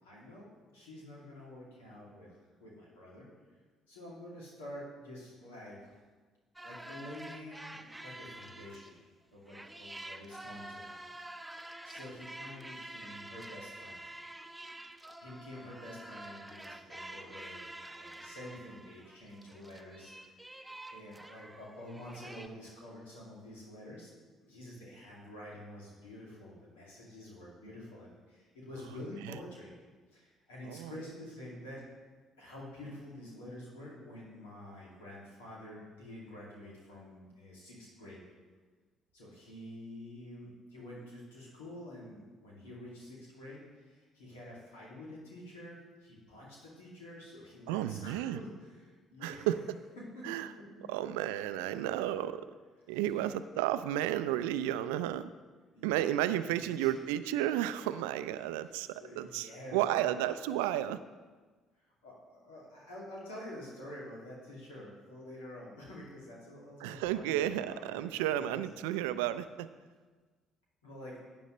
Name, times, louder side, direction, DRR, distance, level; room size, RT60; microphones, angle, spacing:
voice 1, 0.0-0.5 0.7-3.3 3.9-5.8 6.6-9.0 9.3-11.0 11.3-14.0 15.2-24.1 24.4-29.7 30.1-31.8 32.4-38.2 39.1-49.7 50.0-50.3 50.6-50.9 52.9-53.3 55.7-56.1 56.5-56.9 59.0-60.1 61.8-68.8 70.8-71.2, left 1 dB, 90° left, -5 dB, 2.4 m, -48 dB
sound 1, 6.6-9.1 9.5-22.5, right 1 dB, 10° right, 0.8 m, -48 dB
voice 2, 47.7-48.4 49.2-49.6 50.2-50.5 50.9-52.4 52.9-55.3 55.8-61.0 66.8-69.7, right 12 dB, 80° right, 13 dB, 0.3 m, -32 dB
11.0 x 8.9 x 3.2 m, 1.4 s
hypercardioid pair, 55°, 0 cm